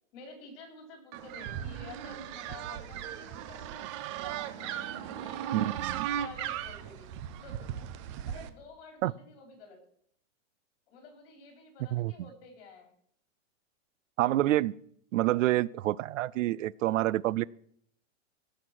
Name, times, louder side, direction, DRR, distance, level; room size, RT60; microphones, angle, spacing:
voice 1, 0.1-3.9 4.5-7.1 7.4-7.7 8.2-9.8 10.9-12.9, left 3 dB, 45° left, 3 dB, 4.6 m, -51 dB
sound 1, 1.1-8.5, right 10 dB, 25° right, 0.5 m, -37 dB
voice 2, 5.5-6.1 9.0-9.1 11.9-12.3 14.2-14.7 15.1-17.4, right 15 dB, 75° right, 23 dB, 0.5 m, -28 dB
16.5 x 6.6 x 6.1 m, 0.67 s
supercardioid pair, 155°, 38 cm